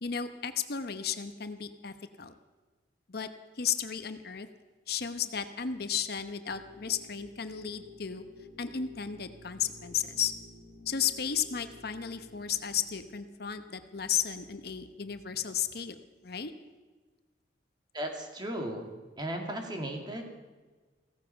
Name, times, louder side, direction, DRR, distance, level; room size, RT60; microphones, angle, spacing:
voice 1, 0.0-2.4 3.1-3.3 3.6-4.5 4.9-8.2 8.6-10.3 10.9-16.0 16.2-16.5, left 8 dB, 60° left, 10 dB, 0.9 m, -34 dB
sound 1, 6.5-13.2, left 1 dB, 45° right, 3.1 m, -52 dB
voice 2, 17.9-18.9 19.2-20.3, right 1 dB, 25° right, 3 dB, 2.4 m, -35 dB
16.0 x 15.0 x 5.8 m, 1.3 s
head